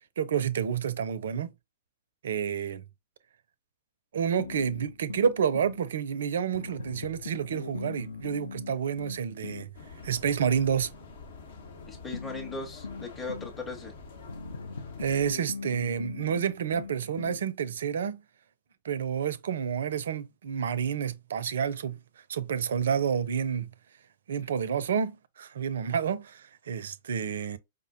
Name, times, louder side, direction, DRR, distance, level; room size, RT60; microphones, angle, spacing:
voice 1, 0.2-1.5 2.2-2.8 4.1-9.7 10.0-10.9 15.0-18.2 18.8-22.0 22.3-23.7 24.3-27.6, right 7 dB, 65° right, 0.4 m, -29 dB
sound 1, 4.4-5.8 6.5-9.7 12.1-13.6 14.3-17.5, left 4 dB, 75° left, 0.4 m, -40 dB
sound 2, 9.7-15.3, left 4 dB, 60° left, 0.9 m, -46 dB
voice 2, 11.9-13.9, left 2 dB, 10° left, 0.7 m, -38 dB
5.0 x 2.1 x 2.6 m
figure-of-eight pair, 110°, 0 cm